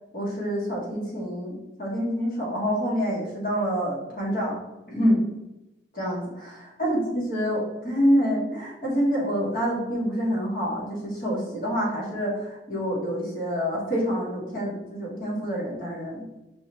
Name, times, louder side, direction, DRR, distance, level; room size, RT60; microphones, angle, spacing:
voice 1, 0.1-4.6 4.9-5.2 5.9-16.2, equal, 50° left, -5 dB, 1.5 m, -27 dB
5.3 x 2.9 x 3.1 m, 0.96 s
head